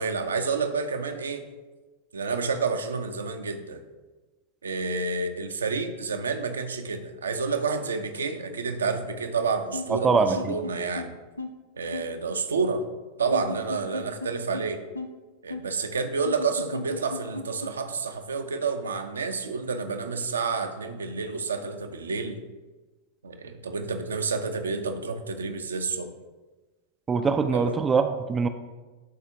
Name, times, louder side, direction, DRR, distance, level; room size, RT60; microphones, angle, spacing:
voice 1, 0.0-1.4 2.1-3.8 4.6-11.1 11.7-12.8 13.2-14.8 15.4-22.4 23.2-26.1 27.5-27.8, right 4 dB, 70° right, 6 dB, 0.6 m, -29 dB
sound 1, 9.7-10.7 11.0-11.1 11.4-11.5 11.9-12.0 12.6-12.8 13.3-14.3 14.5-14.6 14.9-15.1 15.5-15.6 16.2-17.7, left 3 dB, 80° left, 0.5 m, -34 dB
voice 2, 9.9-10.6 27.1-28.5, right 5 dB, 20° right, 8 dB, 0.4 m, -23 dB
11.5 x 4.2 x 2.7 m, 1.2 s
figure-of-eight pair, 90°, 0 cm